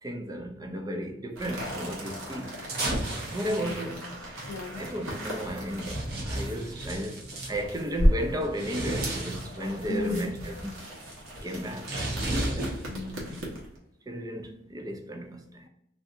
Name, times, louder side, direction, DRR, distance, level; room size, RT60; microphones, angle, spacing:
voice 1, 0.0-2.7 3.3-4.1 4.8-10.7 11.4-11.9 12.3-12.7 14.1-15.7, equal, 20° right, 0.4 m, -34 dB
sound 1, 1.4-1.9 2.7-7.6 8.3-9.7 10.1-13.4, right 1 dB, 50° right, 0.9 m, -34 dB
sound 2, 1.4-13.8, equal, 85° right, 1.1 m, -34 dB
voice 2, 4.5-4.8 9.9-10.3 11.5-11.6 12.8-13.6, left 3 dB, 85° left, 0.5 m, -36 dB
3.2 x 2.6 x 2.5 m
head